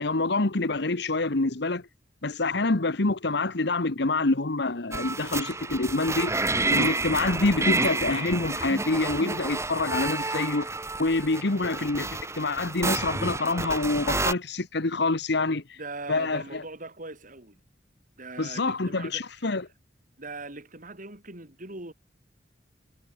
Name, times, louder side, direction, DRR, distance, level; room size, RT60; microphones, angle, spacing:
voice 1, 0.0-1.8 2.2-6.4 6.7-10.7 11.0-12.1 12.4-15.8 16.1-16.6 18.4-19.6, left 2 dB, 65° left, 1.3 m, -26 dB
sound 1, 4.9-14.3, right 2 dB, 15° right, 2.1 m, -29 dB
voice 2, 11.4-11.8 15.8-17.6 18.2-19.3 20.2-21.9, right 3 dB, 45° right, 5.5 m, -41 dB
head